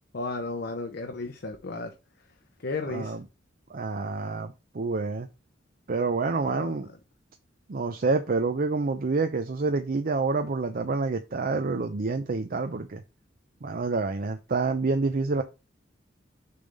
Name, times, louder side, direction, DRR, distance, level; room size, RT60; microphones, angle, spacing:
voice 1, 0.1-1.9 2.6-3.1 6.5-6.7, left 3 dB, 60° left, 0.8 m, -33 dB
voice 2, 2.9-3.2 3.7-5.3 5.9-6.9 7.7-13.0 13.6-15.4, right 3 dB, 50° right, 0.6 m, -28 dB
6.9 x 3.4 x 5.4 m
head